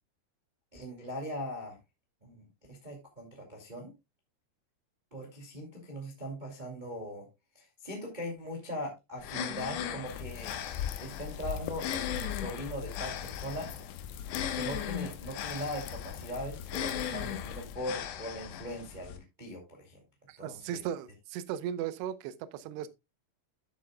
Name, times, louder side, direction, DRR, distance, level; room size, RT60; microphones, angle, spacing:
voice 1, 0.7-1.8 2.2-3.9 5.1-7.3 7.5-10.5 11.0-13.7 14.5-20.0 20.4-20.8, equal, 15° right, 1.5 m, -40 dB
sound 1, 9.2-19.2, left 9 dB, 70° left, 3.0 m, -38 dB
sound 2, 10.1-17.8, left 9 dB, 85° left, 3.3 m, -41 dB
voice 2, 20.3-22.9, right 10 dB, 75° right, 2.7 m, -37 dB
12.0 x 8.1 x 2.3 m
omnidirectional pair, 5.6 m